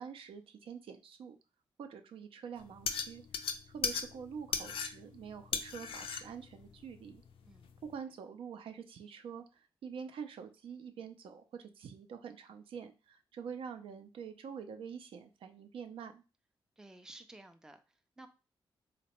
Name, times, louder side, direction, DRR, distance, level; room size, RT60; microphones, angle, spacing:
voice 1, 0.0-1.4 1.8-7.2 7.8-16.2, right 7 dB, 80° right, 8 dB, 0.4 m, -46 dB
sound 1, 2.6-8.0, left 6 dB, 80° left, 0.4 m, -39 dB
voice 2, 16.8-17.8 18.2-18.3, right 2 dB, 5° right, 7 dB, 0.3 m, -53 dB
3.8 x 2.1 x 2.9 m, 0.31 s
wide cardioid pair, 120°, 9 cm